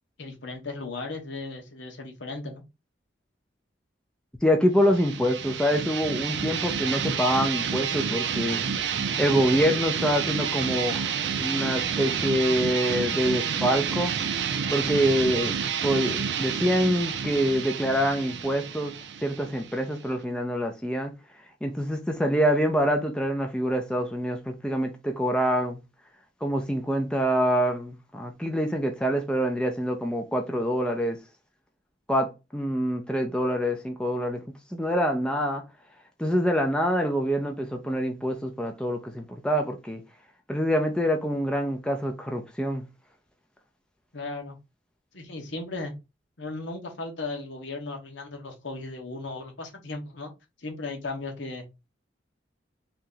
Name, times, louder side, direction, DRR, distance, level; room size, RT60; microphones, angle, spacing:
voice 1, 0.2-2.6 44.1-44.6 45.1-45.9 46.4-50.3 50.6-51.6, left 3 dB, 80° left, 1.0 m, -36 dB
voice 2, 4.4-8.6 9.2-11.1 11.4-14.1 14.7-15.6 15.8-18.9 19.2-21.1 21.6-25.8 26.4-31.2 32.1-34.4 34.7-35.6 36.2-40.0 40.5-42.8, equal, 5° left, 0.4 m, -25 dB
sound 1, 4.8-20.2, right 7 dB, 70° right, 0.5 m, -29 dB
3.2 x 2.9 x 3.8 m
head